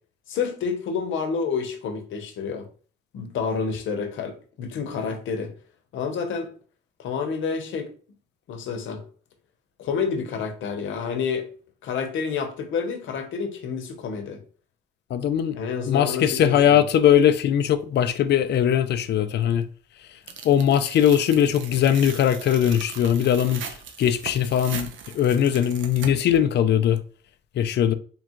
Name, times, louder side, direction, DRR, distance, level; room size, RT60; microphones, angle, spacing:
voice 1, 0.3-2.7 3.1-5.5 5.9-6.5 7.0-7.9 8.5-9.0 9.8-11.5 11.8-14.4 15.5-16.8, left 5 dB, 80° left, 0.9 m, -29 dB
voice 2, 15.1-15.6 15.9-19.6 20.4-23.6 24.0-24.9 25.1-27.0 27.6-27.9, left 9 dB, 60° left, 0.5 m, -20 dB
Tearing, 20.3-26.4, right 7 dB, 75° right, 0.7 m, -39 dB
3.5 x 2.4 x 4.5 m
cardioid pair, 90°, 20 cm